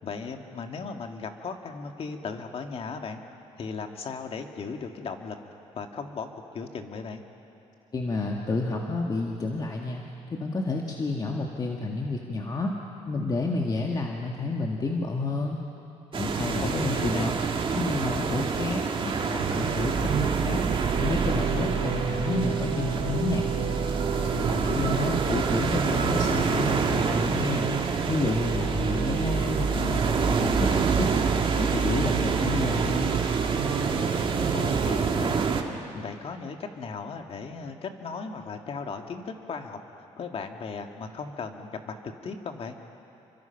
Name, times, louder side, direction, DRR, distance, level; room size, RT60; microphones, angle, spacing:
voice 1, 0.0-3.2 3.6-5.4 5.7-7.2 16.6-17.4 24.4-25.1 34.5-35.4 35.9-42.0 42.2-42.8, left 5 dB, 50° left, 4 dB, 2.1 m, -37 dB
voice 2, 7.9-10.0 10.3-12.7 13.1-15.6 16.1-17.3 17.7-20.6 21.0-23.5 24.5-27.7 28.1-31.1 31.5-33.1, left 3 dB, 35° left, 0 dB, 2.0 m, -30 dB
sound 1, 16.1-35.6, right 5 dB, 45° right, 2.0 m, -28 dB
sound 2, 19.4-34.9, right 6 dB, 75° right, 3.6 m, -29 dB
29.0 x 24.5 x 5.9 m, 2.9 s
cardioid pair, 100°, 12 cm